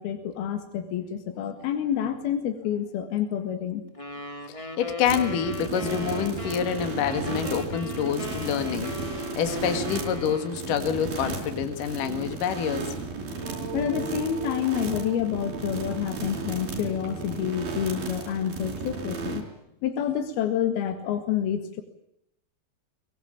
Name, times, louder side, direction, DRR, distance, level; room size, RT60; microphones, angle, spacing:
voice 1, 0.0-3.8 13.7-19.4 19.8-21.8, left 9 dB, 75° left, 6 dB, 3.7 m, -28 dB
sound 1, 3.9-10.8, left 2 dB, 15° left, 1.3 m, -38 dB
voice 2, 4.5-12.9, left 8 dB, 60° left, 7 dB, 3.2 m, -27 dB
sound 2, 5.1-19.4, right 3 dB, 70° right, 6.4 m, -34 dB
sound 3, 13.4-18.9, right 6 dB, 90° right, 6.5 m, -43 dB
23.0 x 22.0 x 8.9 m, 0.79 s
omnidirectional pair, 4.5 m